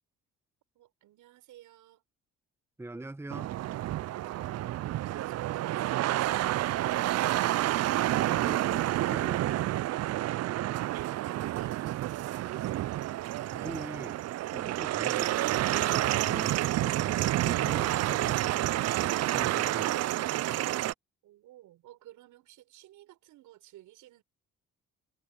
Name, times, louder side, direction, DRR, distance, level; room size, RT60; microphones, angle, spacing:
voice 1, 0.7-2.0 5.2-7.6 10.8-12.9 21.2-24.2, right 14 dB, 90° right, 6.5 m, -54 dB
voice 2, 2.8-3.5 13.5-20.3, right 2 dB, 10° right, 1.0 m, -44 dB
sound 1, 3.3-20.9, right 14 dB, 55° right, 0.4 m, -29 dB
cardioid pair, 90°, 30 cm